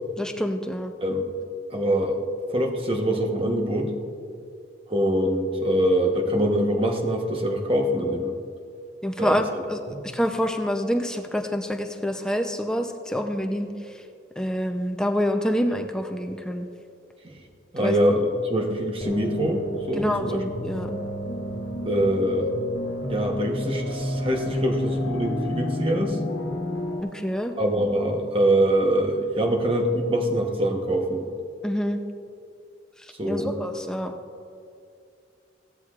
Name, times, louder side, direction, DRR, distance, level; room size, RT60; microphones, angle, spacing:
voice 1, 0.2-0.9 9.0-13.7 14.4-16.7 17.8-18.0 20.0-20.9 27.0-27.5 31.6-32.0 33.3-34.1, equal, 5° left, 4 dB, 0.6 m, -27 dB
voice 2, 1.7-2.2 2.5-3.9 4.9-8.3 9.2-9.6 9.9-10.0 17.2-17.3 17.7-20.4 21.8-22.5 23.1-26.2 27.6-31.2 33.2-33.6, right 1 dB, 30° right, 2 dB, 1.1 m, -24 dB
sound 1, 19.0-27.0, left 1 dB, 75° left, 1.2 m, -30 dB
16.5 x 12.5 x 2.5 m, 2.4 s
head